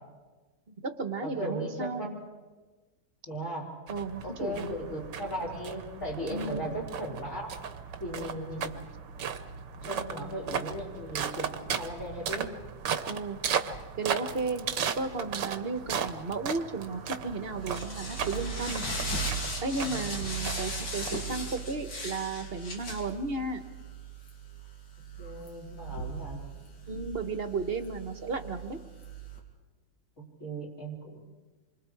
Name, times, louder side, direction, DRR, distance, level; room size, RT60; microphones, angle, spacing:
voice 1, 0.7-2.1 3.9-4.7 6.3-6.7 13.1-13.4 14.0-14.7 15.0-18.9 19.6-23.6 26.9-28.8, right 3 dB, 35° right, 8 dB, 1.4 m, -34 dB
voice 2, 1.2-2.1 3.3-3.7 4.2-7.5 8.0-8.7 9.3-9.4 9.8-12.5 19.9-20.1 25.2-26.4 30.2-31.2, right 1 dB, 45° left, -3 dB, 4.6 m, -37 dB
sound 1, 3.9-21.6, right 7 dB, 75° right, 1.7 m, -36 dB
sound 2, 17.0-29.4, right 2 dB, 75° left, 3.5 m, -38 dB
27.5 x 25.0 x 4.7 m, 1.3 s
omnidirectional pair, 1.9 m